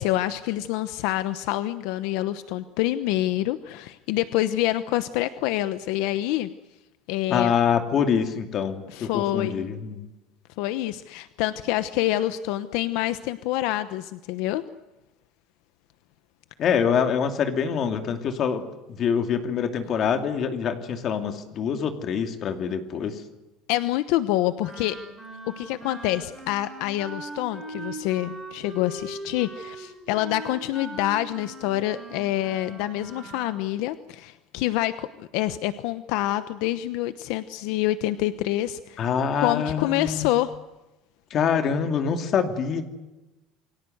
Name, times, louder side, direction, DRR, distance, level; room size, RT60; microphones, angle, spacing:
voice 1, 0.0-6.5 7.1-7.5 8.9-9.6 10.6-14.6 23.7-25.0 25.6-39.1 39.4-40.5, left 15 dB, 65° left, 12 dB, 1.0 m, -27 dB
voice 2, 7.3-10.1 16.6-18.6 19.0-23.1 39.0-40.3 41.3-42.8, left 7 dB, 35° left, 7 dB, 2.6 m, -25 dB
Wind instrument woodwind instrument, 24.6-33.6, right 2 dB, ahead, 6.0 m, -40 dB
28.5 x 23.0 x 8.0 m, 1.0 s
cardioid pair, 175°, 0 cm